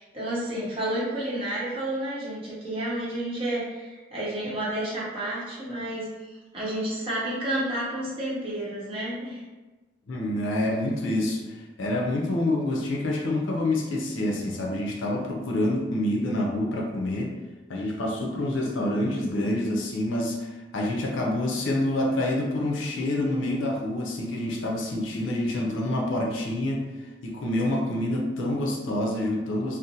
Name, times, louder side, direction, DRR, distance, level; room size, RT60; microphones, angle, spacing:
voice 1, 0.0-9.4, right 1 dB, 30° right, -7 dB, 0.8 m, -31 dB
voice 2, 10.1-17.3 17.7-26.8 27.2-29.8, left 1 dB, 80° left, 0 dB, 0.5 m, -27 dB
2.5 x 2.0 x 2.7 m, 1.2 s
head